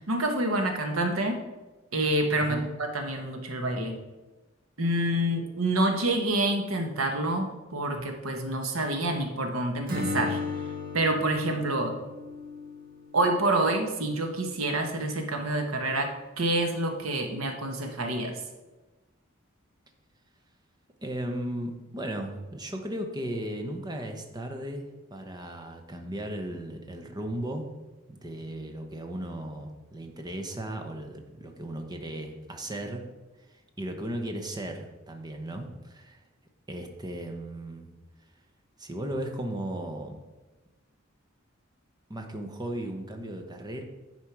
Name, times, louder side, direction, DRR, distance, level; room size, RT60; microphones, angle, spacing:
voice 1, 0.1-1.4 1.9-4.0 4.8-10.4 10.9-11.9 13.1-16.1 16.4-18.3, right 1 dB, 90° right, 4 dB, 1.2 m, -27 dB
voice 2, 2.4-2.7 21.0-24.8 25.1-27.7 28.1-33.0 33.8-36.2 36.7-37.9 38.8-40.2 42.1-43.8, right 1 dB, 20° right, 4 dB, 0.9 m, -36 dB
Acoustic guitar / Strum, 9.9-13.8, left 3 dB, 45° right, 1.6 m, -35 dB
10.0 x 4.5 x 4.7 m, 1.2 s
head